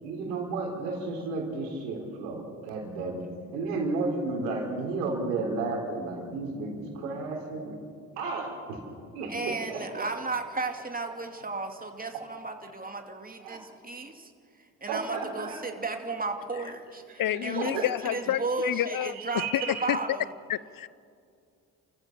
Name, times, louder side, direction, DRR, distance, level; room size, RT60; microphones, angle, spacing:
voice 1, 0.0-3.2 3.5-7.7 8.2-8.8 9.1-10.0 13.4-13.6 14.8-15.8 17.3-18.4 19.0-19.9, right 3 dB, 85° right, 2 dB, 3.7 m, -33 dB
voice 2, 9.3-14.3 14.8-17.7 18.1-20.3, right 3 dB, 20° right, 4 dB, 2.7 m, -34 dB
voice 3, 17.2-19.1 19.5-20.0 20.5-20.9, left 12 dB, 50° left, 20 dB, 0.6 m, -29 dB
28.5 x 15.0 x 7.2 m, 2.4 s
hypercardioid pair, 45°, 45 cm